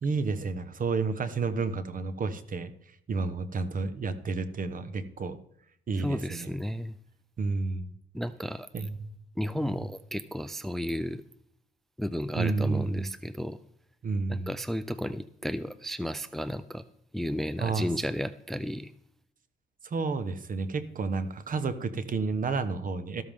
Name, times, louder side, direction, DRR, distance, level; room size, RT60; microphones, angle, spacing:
voice 1, 0.0-5.4 5.9-6.5 7.4-7.9 8.7-9.1 9.8-9.9 12.3-13.1 14.0-14.5 17.6-17.9 19.8-23.2, right 4 dB, 45° right, 12 dB, 1.1 m, -31 dB
voice 2, 6.0-7.0 8.1-8.7 9.4-11.2 12.0-13.6 14.3-16.8 17.1-18.9, equal, ahead, 13 dB, 0.5 m, -33 dB
13.5 x 13.0 x 3.6 m, 0.71 s
cardioid pair, 90°, 20 cm